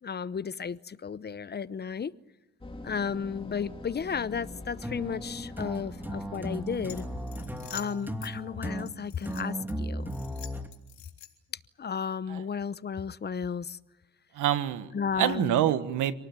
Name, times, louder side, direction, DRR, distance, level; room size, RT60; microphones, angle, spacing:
voice 1, 0.0-2.1 2.8-7.1 7.7-10.1 11.8-13.8 14.9-15.6, left 6 dB, 35° left, 0.8 m, -33 dB
sound 1, 2.6-7.8, left 2 dB, 15° left, 3.2 m, -44 dB
sound 2, 4.8-10.7, equal, 5° right, 2.4 m, -36 dB
sound 3, 6.9-8.3 8.9-9.7 10.1-11.5, left 12 dB, 70° left, 3.5 m, -47 dB
voice 2, 14.3-16.2, right 12 dB, 85° right, 1.5 m, -27 dB
27.0 x 19.0 x 9.0 m
cardioid pair, 90°, 30 cm